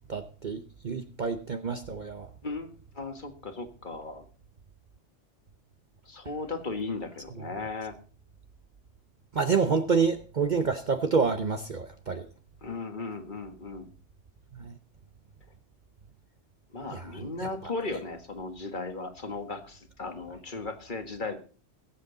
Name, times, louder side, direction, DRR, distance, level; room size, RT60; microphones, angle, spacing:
voice 1, 0.1-2.3 9.3-12.3 14.5-14.7 16.9-17.1, right 5 dB, 45° right, 0.9 m, -28 dB
voice 2, 2.4-4.2 6.1-8.0 12.6-13.9 16.7-21.4, left 3 dB, 45° left, 1.8 m, -36 dB
21.0 x 7.9 x 3.9 m
omnidirectional pair, 1.2 m